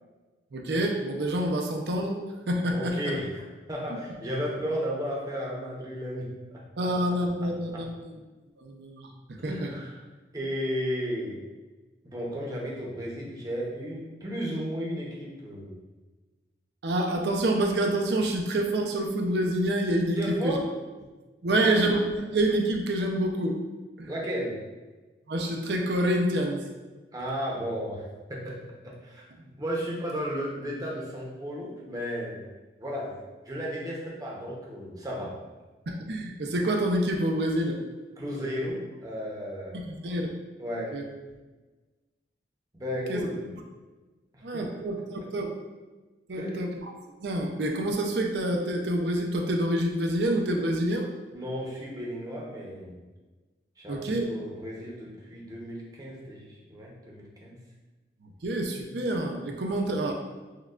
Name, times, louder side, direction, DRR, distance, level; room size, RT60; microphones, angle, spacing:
voice 1, 0.5-2.2 2.5-3.1 6.8-8.2 8.6-9.7 16.8-20.6 21.4-23.6 24.0-24.1 25.3-26.7 35.9-37.8 39.7-40.3 40.7-41.0 43.1-43.2 44.4-45.5 46.3-46.9 47.2-51.1 53.9-54.3 58.2-60.1, right 1 dB, 65° right, 2 dB, 0.5 m, -27 dB
voice 2, 2.7-6.9 7.4-7.9 9.4-9.9 10.3-11.4 12.0-15.7 20.2-20.7 21.4-21.9 24.1-24.6 27.1-32.4 32.8-33.2 33.4-35.4 38.2-39.8 40.6-41.0 42.7-43.4 44.3-44.6 45.2-45.3 46.3-46.6 51.3-53.0 53.8-57.6, equal, 20° right, -3 dB, 0.7 m, -34 dB
6.4 x 2.3 x 2.4 m, 1.2 s
head